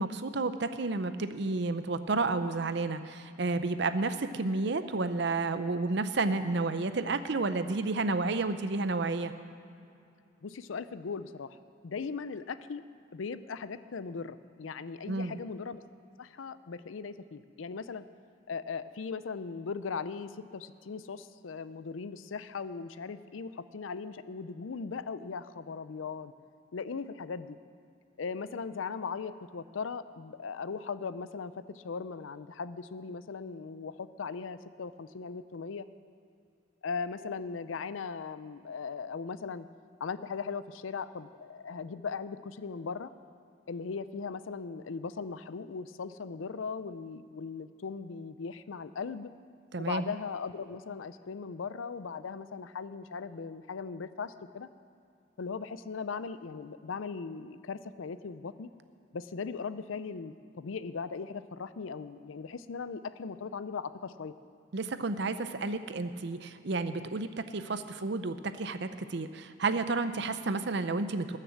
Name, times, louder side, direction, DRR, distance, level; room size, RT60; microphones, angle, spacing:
voice 1, 0.0-9.3 15.1-15.4 49.7-50.0 64.7-71.4, right 3 dB, 60° right, 11 dB, 0.6 m, -31 dB
voice 2, 10.4-11.6 11.8-12.8 13.1-15.8 16.2-18.0 18.5-26.3 26.7-27.6 28.2-35.9 36.8-39.7 40.0-43.1 43.7-49.3 49.8-54.7 55.4-58.7 59.1-64.3, left 5 dB, 90° left, 14 dB, 0.5 m, -38 dB
20.0 x 6.7 x 7.2 m, 2.6 s
head